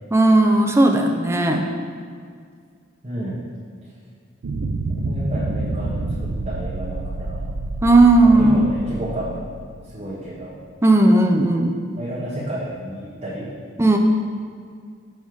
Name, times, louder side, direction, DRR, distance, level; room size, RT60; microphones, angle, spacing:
voice 1, 0.1-1.7 7.8-8.7 10.8-11.7 13.8-14.0, right 2 dB, 15° right, 2 dB, 0.4 m, -15 dB
voice 2, 3.0-3.4 3.8-3.9 4.9-7.4 8.2-9.6 9.8-10.6 12.0-13.5, right 1 dB, 30° right, -12 dB, 1.3 m, -31 dB
sound 1, 4.4-10.2, right 2 dB, 80° right, 0.5 m, -28 dB
6.3 x 3.4 x 6.1 m, 2.1 s
head